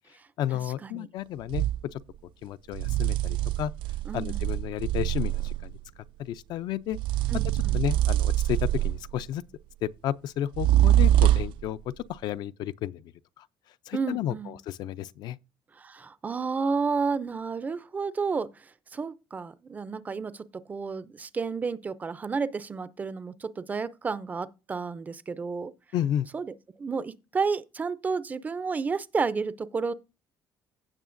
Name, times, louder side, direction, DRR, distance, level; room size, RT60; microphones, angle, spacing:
voice 1, 0.4-1.6 1.9-2.0 2.4-3.7 4.1-5.7 6.2-7.0 7.7-9.4 9.8-11.8 12.1-13.0 13.4-13.5 13.9-15.4 25.9-26.3, left 11 dB, 60° left, 0.4 m, -32 dB
sound 1, 1.5-1.8 2.7-5.7 6.9-9.2 10.5-11.7, right 13 dB, 90° right, 0.3 m, -24 dB
voice 2, 4.1-4.4 7.3-7.8 13.9-14.5 15.8-25.7 26.3-29.9, right 5 dB, 20° right, 0.4 m, -31 dB
16.0 x 6.2 x 2.5 m
cardioid pair, 175°, 8 cm